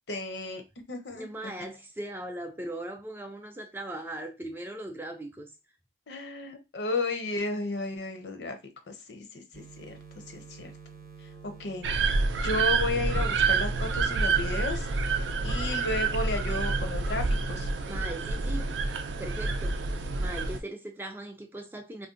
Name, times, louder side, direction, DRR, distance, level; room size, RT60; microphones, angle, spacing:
voice 1, 0.1-0.6 0.9-1.5 6.1-8.6 8.9-10.0 10.3-10.7 11.2-11.9 12.4-14.9 15.4-17.7, left 2 dB, 70° left, 0.6 m, -33 dB
voice 2, 1.1-5.5 17.9-18.7 19.2-19.8 20.2-22.1, right 1 dB, 10° right, 0.3 m, -39 dB
sound 1, 9.5-20.2, right 5 dB, 45° right, 0.7 m, -47 dB
sound 2, 11.8-20.6, right 4 dB, 85° right, 0.4 m, -28 dB
2.6 x 2.1 x 3.6 m
head